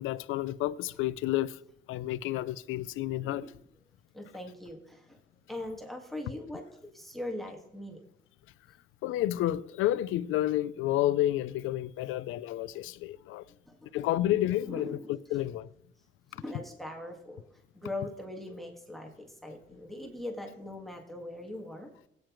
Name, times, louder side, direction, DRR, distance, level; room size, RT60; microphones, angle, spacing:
voice 1, 0.0-1.6 1.9-3.5 9.0-13.4 13.9-15.0 15.3-15.7, left 14 dB, 90° left, 0.5 m, -30 dB
voice 2, 4.1-5.2 5.5-8.0 13.7-14.0 14.6-15.1 16.3-17.4 17.7-21.9, left 1 dB, ahead, 1.8 m, -41 dB
17.5 x 9.1 x 3.1 m
cardioid pair, 90°, 20 cm